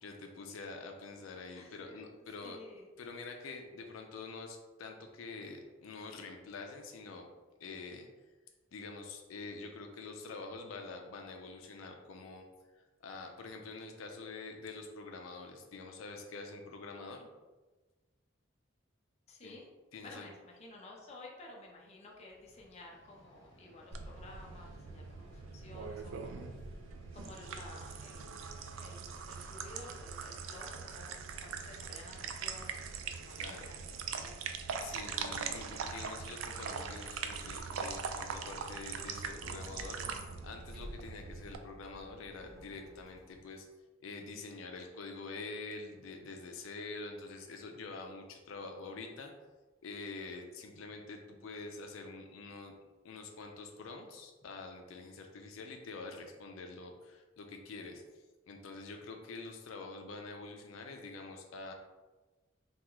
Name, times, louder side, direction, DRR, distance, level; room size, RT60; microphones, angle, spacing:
voice 1, 0.0-2.6 3.0-7.3 7.6-8.1 8.7-12.5 12.7-17.3 19.4-19.6 19.9-20.3 33.3-33.7 34.8-43.7 44.0-49.3 49.8-52.7 53.0-61.7, left 3 dB, 85° left, 4 dB, 0.4 m, -46 dB
voice 2, 1.5-2.0 2.4-2.9 19.3-19.7 20.0-26.6 27.1-28.4 28.8-34.4, left 2 dB, 35° left, -1 dB, 0.5 m, -53 dB
Vehicle, 22.1-31.0, equal, 65° left, 0.9 m, -61 dB
sound 1, 23.9-41.6, right 5 dB, 85° right, 0.3 m, -42 dB
Squeak, 37.2-43.6, equal, ahead, 0.8 m, -55 dB
3.5 x 2.3 x 2.9 m, 1.2 s
head